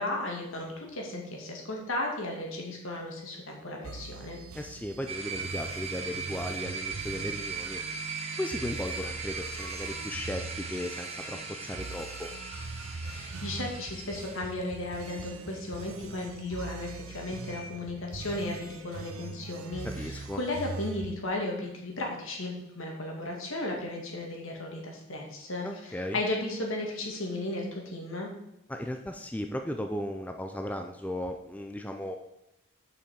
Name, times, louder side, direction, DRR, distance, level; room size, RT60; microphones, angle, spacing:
voice 1, 0.0-4.4 13.0-28.3, left 2 dB, 70° left, 0 dB, 2.2 m, -35 dB
sound 1, 3.8-21.1, right 3 dB, 80° right, 0.7 m, -42 dB
voice 2, 4.5-7.8 8.4-12.3 19.8-20.4 25.6-26.2 28.7-32.2, left 1 dB, 5° left, 4 dB, 0.4 m, -36 dB
sound 2, 5.1-17.7, right 5 dB, 30° right, 1.2 m, -39 dB
7.0 x 5.9 x 6.4 m, 0.85 s
head